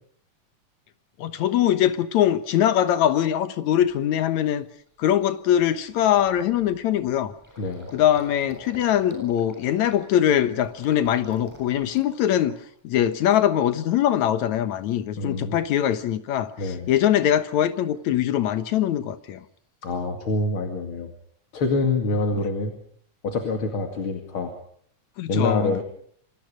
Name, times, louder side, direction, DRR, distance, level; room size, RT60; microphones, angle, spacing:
voice 1, 1.2-4.7 5.0-7.3 7.9-12.6 12.8-19.4 22.3-22.4 25.2-25.8, left 11 dB, 75° left, 11 dB, 2.5 m, -22 dB
Gurgling, 3.3-3.4 3.9-4.1 4.5-4.7 4.9-13.0 13.3-13.9, equal, 5° left, 7.3 m, -46 dB
voice 2, 7.6-7.9 15.2-15.6 16.6-16.9 19.8-21.1 21.5-22.7 23.2-24.5 25.3-25.8, left 3 dB, 45° left, 4 dB, 2.9 m, -26 dB
27.5 x 24.0 x 5.1 m, 0.62 s
omnidirectional pair, 3.4 m